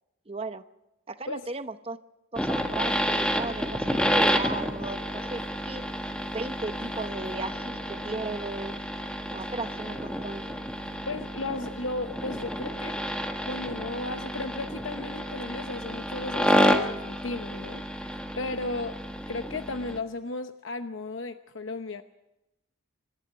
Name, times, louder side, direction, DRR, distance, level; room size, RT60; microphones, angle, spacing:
voice 1, 0.3-0.6 1.1-2.0 2.3-5.8 6.3-8.8 9.3-10.4, right 3 dB, 30° right, 10 dB, 0.8 m, -36 dB
sound 1, 2.3-17.7, right 1 dB, 70° right, 4.3 m, -53 dB
sound 2, 2.4-20.0, equal, 5° left, 1.4 m, -30 dB
voice 2, 11.1-12.9 13.5-19.0 19.3-22.0, left 2 dB, 70° left, 8 dB, 0.9 m, -35 dB
26.0 x 12.0 x 9.5 m, 0.93 s
head